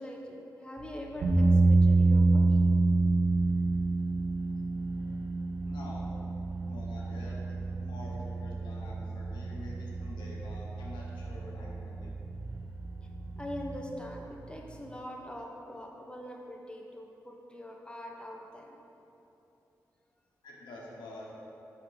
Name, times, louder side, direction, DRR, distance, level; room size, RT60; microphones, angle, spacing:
voice 1, 0.0-2.6 13.4-18.8, equal, 15° left, 0 dB, 1.1 m, -43 dB
sound 1, 0.8-14.8, right 3 dB, 60° right, 1.2 m, -48 dB
sound 2, 1.2-13.7, right 2 dB, 75° right, 1.3 m, -28 dB
voice 2, 5.6-6.1 6.7-12.1 20.4-21.3, left 1 dB, 85° left, -4 dB, 1.1 m, -47 dB
6.4 x 5.8 x 4.0 m, 2.8 s
supercardioid pair, 40°, 8 cm